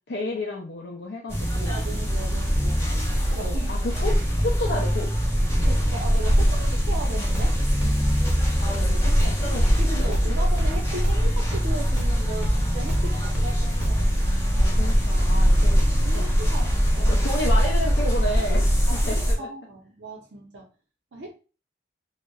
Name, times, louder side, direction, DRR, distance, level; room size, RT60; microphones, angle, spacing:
voice 1, 0.1-1.8 2.5-2.7 3.2-5.1 8.6-9.6 10.0-10.3 14.6-15.8 16.1-16.3 17.1-19.5, left 1 dB, 70° left, -1 dB, 0.4 m, -32 dB
sound 1, 1.3-19.3, equal, 15° left, 0.5 m, -22 dB
voice 2, 1.7-2.8 3.3-3.7 5.6-7.6 9.1-14.2 16.0-17.2 18.9-20.7 21.1-21.3, right 1 dB, 85° right, -1 dB, 0.5 m, -37 dB
sound 2, 6.9-14.1, equal, 10° right, 0.9 m, -30 dB
2.7 x 2.0 x 2.2 m, 0.34 s
head